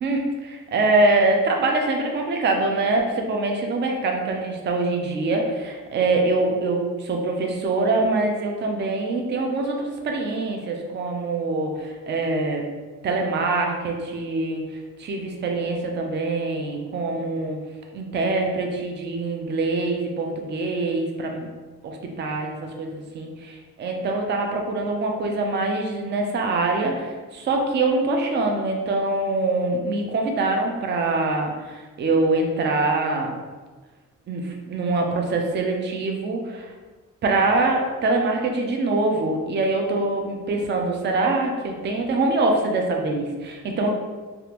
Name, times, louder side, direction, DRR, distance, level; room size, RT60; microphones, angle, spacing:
voice 1, 0.0-12.6 13.0-17.6 17.9-21.5 21.8-23.3 23.8-33.3 34.3-36.7 37.2-43.9, right 2 dB, 30° right, 2 dB, 0.4 m, -24 dB
3.4 x 2.4 x 2.9 m, 1.3 s
cardioid pair, 155°, 34 cm